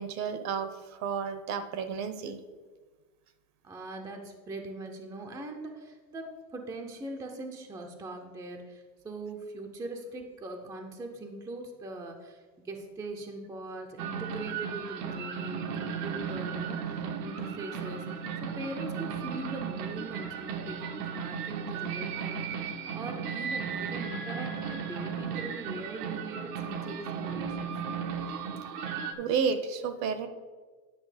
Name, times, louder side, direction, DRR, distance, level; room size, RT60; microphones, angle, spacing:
voice 1, 0.0-2.4 29.2-30.3, right 6 dB, 40° right, 11 dB, 0.7 m, -31 dB
voice 2, 3.6-27.7, right 2 dB, 10° right, 3 dB, 0.5 m, -41 dB
sound 1, 14.0-29.1, right 6 dB, 85° right, 1.2 m, -35 dB
9.8 x 5.9 x 4.9 m, 1.4 s
supercardioid pair, 150°, 45 cm